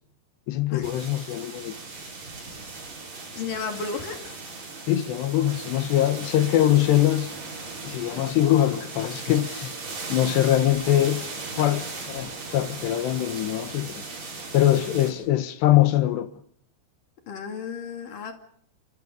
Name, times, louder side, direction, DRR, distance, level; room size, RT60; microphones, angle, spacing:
voice 1, 0.5-1.8 4.9-7.3 7.8-9.7 10.1-11.3 11.6-14.0 14.5-16.3, left 13 dB, 80° left, 3.2 m, -23 dB
sound 1, 0.8-15.1, right 3 dB, 50° right, 7.6 m, -37 dB
voice 2, 3.3-4.3 17.3-18.3, left 5 dB, 55° left, 3.7 m, -34 dB
27.0 x 23.5 x 5.3 m
omnidirectional pair, 4.9 m